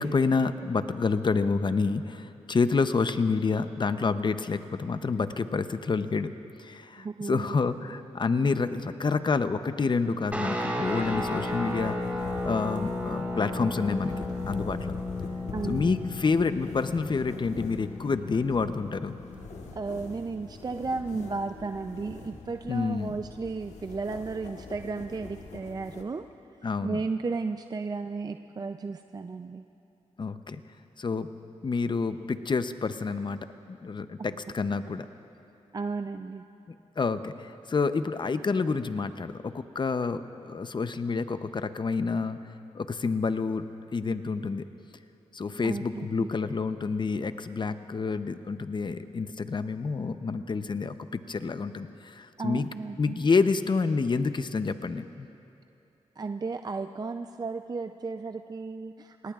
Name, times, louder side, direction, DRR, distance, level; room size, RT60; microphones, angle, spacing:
voice 1, 0.0-6.3 6.6-12.0 12.4-14.1 14.5-15.0 15.7-19.2 22.7-23.1 26.6-27.0 30.2-30.6 31.0-31.3 31.6-33.4 33.7-35.1 37.0-42.4 42.7-43.6 43.9-44.6 45.3-52.7 53.0-55.3, left 4 dB, 40° left, 11 dB, 0.7 m, -28 dB
voice 2, 7.0-7.6 7.8-7.9 15.5-15.9 19.8-26.3 26.8-29.7 35.7-36.4 45.6-46.3 52.4-53.2 56.2-59.3, right 4 dB, 35° right, 7 dB, 0.5 m, -34 dB
Guitar, 10.3-19.4, left 2 dB, 15° right, 3.0 m, -34 dB
sound 1, 10.8-26.0, left 4 dB, 75° left, 1.4 m, -43 dB
27.5 x 19.0 x 2.4 m, 2.9 s
cardioid pair, 65°, 12 cm